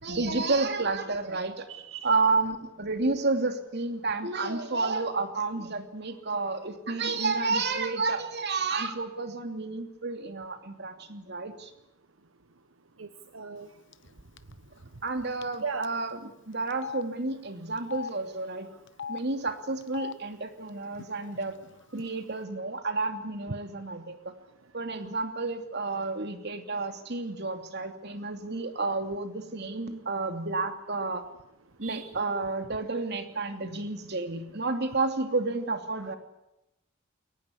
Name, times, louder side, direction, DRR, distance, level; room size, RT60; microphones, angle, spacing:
voice 1, 0.0-1.7 2.0-11.7 15.0-16.2 16.5-18.7 19.1-21.6 21.9-24.2 24.7-31.2 31.8-36.2, right 3 dB, 55° right, 7 dB, 2.9 m, -30 dB
voice 2, 1.7-2.2 13.0-13.7 15.6-15.9 31.8-32.2 36.0-36.1, right 5 dB, 75° right, 9 dB, 1.3 m, -38 dB
Telephone, 13.9-14.1 14.4-14.5 15.4-15.5 15.8-15.9 16.7-17.0 17.8-18.1 18.9-19.2 19.8-20.1 20.9-21.1 21.3-22.0, left 6 dB, 65° left, 1.0 m, -38 dB
23.0 x 19.0 x 8.4 m, 0.89 s
head